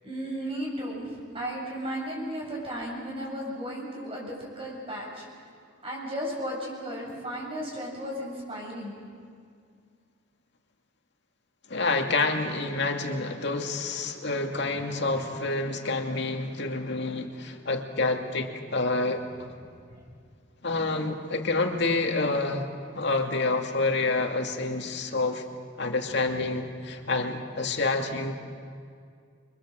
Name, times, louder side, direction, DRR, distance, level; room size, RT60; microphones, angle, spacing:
voice 1, 0.0-5.2 5.8-8.9 19.9-20.0, equal, 30° right, -3 dB, 7.9 m, -35 dB
voice 2, 11.7-19.2 20.6-22.7 22.9-25.4 25.8-28.3, left 3 dB, 60° left, 3 dB, 2.5 m, -28 dB
29.0 x 24.5 x 7.7 m, 2.2 s
head